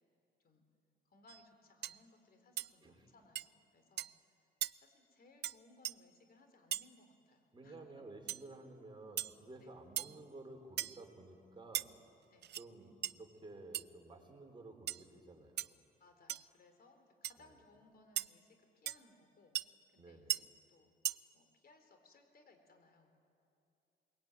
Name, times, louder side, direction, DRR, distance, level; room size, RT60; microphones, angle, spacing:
voice 1, 1.0-4.1 4.8-8.0 9.6-9.8 12.3-12.9 16.0-19.6 19.9-23.2, left 2 dB, 50° left, 6 dB, 4.1 m, -65 dB
sound 1, 1.3-1.4 1.8-2.0 2.6-2.7 3.3-3.5 4.0-4.1 4.6-4.7 5.4-5.6 5.8-5.9 6.7-6.9 8.3-8.4 9.2-9.3 10.0-10.2 10.8-11.0 11.7-11.9 12.4-12.6 13.0-13.1 13.7-13.8 14.9-15.0 15.6-15.7 16.3-16.5 17.2-17.3 18.2-18.3 18.9-19.0 19.5-19.6 20.3-20.4 21.0-21.2, right 12 dB, 60° right, 0.5 m, -38 dB
voice 2, 7.5-11.9 12.6-15.7 20.0-20.4, right 2 dB, 25° right, 2 dB, 4.3 m, -53 dB
22.5 x 22.0 x 9.3 m, 2.6 s
cardioid pair, 90°, 20 cm